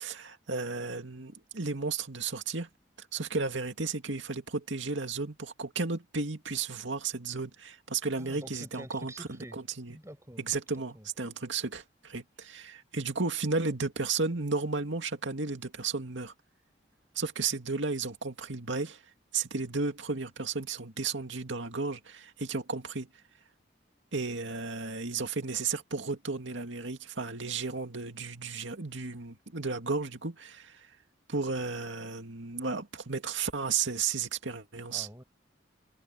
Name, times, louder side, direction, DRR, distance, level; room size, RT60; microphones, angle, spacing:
voice 1, 0.0-2.7 3.1-10.0 10.4-16.3 17.2-19.0 19.3-23.1 24.1-30.9 31.3-35.1, right 4 dB, 75° right, 2.4 m, -33 dB
voice 2, 8.2-9.6 9.9-10.4 10.9-11.1 34.9-35.2, right 1 dB, 15° right, 5.7 m, -46 dB
head